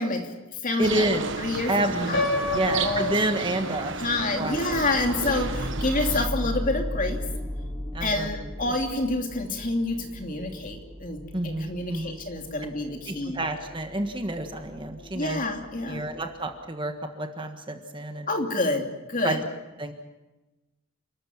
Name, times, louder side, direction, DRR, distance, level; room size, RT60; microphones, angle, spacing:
voice 1, 0.0-1.1 1.4-3.2 4.0-7.2 8.0-13.4 15.1-16.1 18.3-19.4, left 2 dB, 35° left, 3 dB, 2.8 m, -28 dB
voice 2, 0.8-1.2 1.7-3.9 4.3-4.6 7.9-8.3 8.7-8.8 11.3-12.2 13.1-15.4 15.9-18.3 19.2-19.4 19.8-19.9, right 1 dB, 20° right, 5 dB, 1.5 m, -29 dB
sound 1, 0.8-6.3, right 4 dB, 55° right, 1.1 m, -33 dB
Piano, 2.1-4.1, left 2 dB, 55° left, 6.4 m, -29 dB
ab mars atmos, 4.7-16.6, left 1 dB, 5° left, 3.4 m, -36 dB
29.0 x 13.5 x 9.4 m, 1.1 s
head